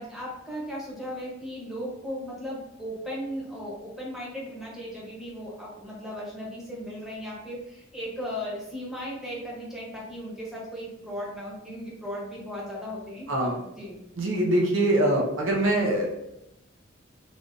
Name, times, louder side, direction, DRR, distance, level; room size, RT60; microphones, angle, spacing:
voice 1, 0.0-14.0, equal, ahead, -5 dB, 0.8 m, -37 dB
voice 2, 13.3-13.6 14.2-16.1, right 1 dB, 80° right, -1 dB, 0.7 m, -23 dB
3.5 x 2.4 x 2.5 m, 0.87 s
head